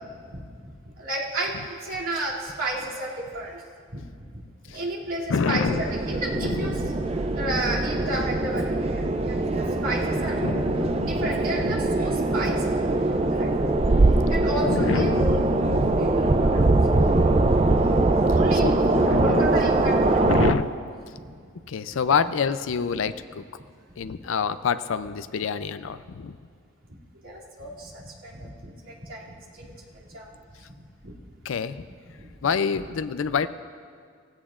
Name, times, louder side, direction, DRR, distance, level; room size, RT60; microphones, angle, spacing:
voice 1, 0.3-0.7 1.0-3.6 3.9-4.1 4.7-7.0 7.3-10.7 11.1-12.6 12.9-13.9 14.3-15.4 15.8-16.8 17.1-17.6 18.3-18.8 19.1-20.6 21.1-21.4 22.9-23.1 24.0-24.1 27.2-30.3 31.0-31.1 32.2-32.3 32.7-32.8, right 1 dB, 80° right, -6 dB, 2.7 m, -33 dB
voice 2, 5.3-5.8 6.4-6.9 10.4-11.3 11.6-11.8 14.7-15.3 15.6-16.0 17.9-18.0 18.6-19.5 20.2-20.7 21.7-23.4 24.0-26.4 31.5-31.9 32.4-33.5, left 5 dB, 70° left, 12 dB, 0.4 m, -27 dB
sound 1, 5.7-20.5, right 2 dB, 30° right, 0.4 m, -22 dB
17.0 x 15.5 x 2.5 m, 2.2 s
head